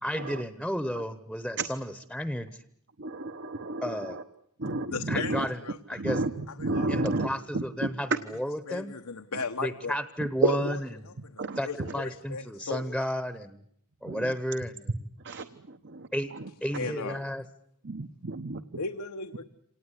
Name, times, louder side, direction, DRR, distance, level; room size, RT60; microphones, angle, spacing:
voice 1, 0.0-2.6 3.8-4.2 5.1-5.6 5.9-6.2 6.9-8.9 9.6-11.1 11.6-13.6 14.0-15.1 16.1-16.3 16.6-17.4, equal, ahead, 12 dB, 0.9 m, -33 dB
voice 2, 3.0-4.2 4.6-5.5 6.0-6.3 6.6-7.3 7.5-7.6 10.4-10.6 11.4-11.6 14.0-14.2 15.2-16.1 17.8-18.6, right 3 dB, 55° right, 9 dB, 1.1 m, -30 dB
voice 3, 4.9-6.0 6.5-6.9 8.7-10.0 10.6-10.8 11.1-12.9 16.7-17.3 18.8-19.4, left 4 dB, 85° left, 7 dB, 1.2 m, -36 dB
26.5 x 19.0 x 9.9 m, 0.73 s
head